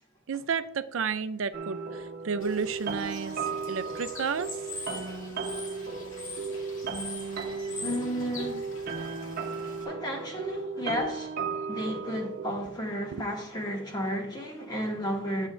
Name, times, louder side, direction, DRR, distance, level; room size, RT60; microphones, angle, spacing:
voice 1, 0.3-3.4 3.7-4.5 6.5-6.6 13.1-13.2, right 6 dB, 75° right, 0.5 m, -32 dB
sound 1, 1.5-12.5, right 5 dB, 50° right, 1.0 m, -35 dB
Bird / Water, 2.4-9.8, left 3 dB, 70° left, 2.5 m, -43 dB
voice 2, 7.8-8.7 9.8-11.3 11.7-15.5, equal, 20° left, 1.6 m, -32 dB
11.5 x 7.3 x 2.5 m
head